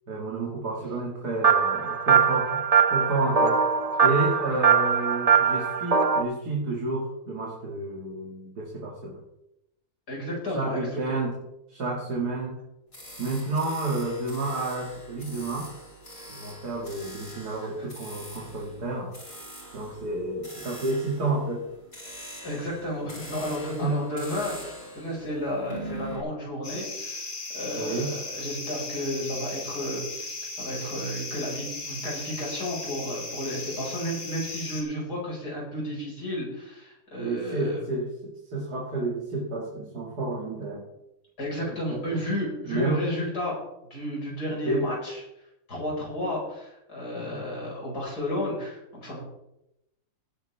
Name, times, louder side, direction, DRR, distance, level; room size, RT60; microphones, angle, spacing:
voice 1, 0.1-2.6 2.9-3.6 4.0-9.2 10.5-11.4 11.7-12.6 13.2-15.7 16.3-19.1 19.7-21.6 23.8-24.0 27.7-28.1 37.2-40.9 41.9-42.2 42.6-43.0 44.6-44.9 47.1-47.4, right 2 dB, 90° right, -2 dB, 2.7 m, -30 dB
sound 1, 1.4-6.2, right 6 dB, 35° right, 0.7 m, -21 dB
voice 2, 10.1-10.8 11.1-11.2 17.8-17.9 22.4-27.2 27.5-37.8 41.4-43.6 43.9-45.2 45.7-49.2, left 1 dB, 80° left, -3 dB, 5.8 m, -32 dB
sound 2, 12.9-26.2, right 1 dB, 35° left, 5.2 m, -43 dB
sound 3, 26.6-34.8, left 3 dB, 55° left, 3.0 m, -37 dB
17.5 x 9.8 x 3.5 m, 0.86 s
omnidirectional pair, 1.6 m